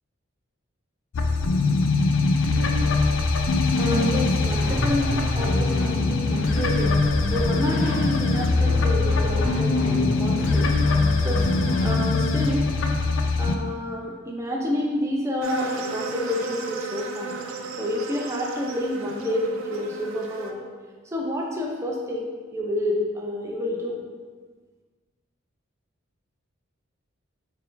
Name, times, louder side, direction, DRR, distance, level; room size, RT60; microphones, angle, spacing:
sound 1, 1.1-13.6, left 3 dB, 70° left, 0.4 m, -22 dB
sound 2, 3.7-11.9, equal, 40° left, 0.7 m, -31 dB
voice 1, 3.8-7.0 7.3-10.7 11.2-11.5 11.8-12.7 13.4-17.3 17.8-20.7 21.0-24.0, left 1 dB, 15° right, -1 dB, 0.4 m, -29 dB
sound 3, 15.4-20.5, right 4 dB, 85° right, 0.4 m, -34 dB
4.3 x 2.6 x 3.8 m, 1.5 s
head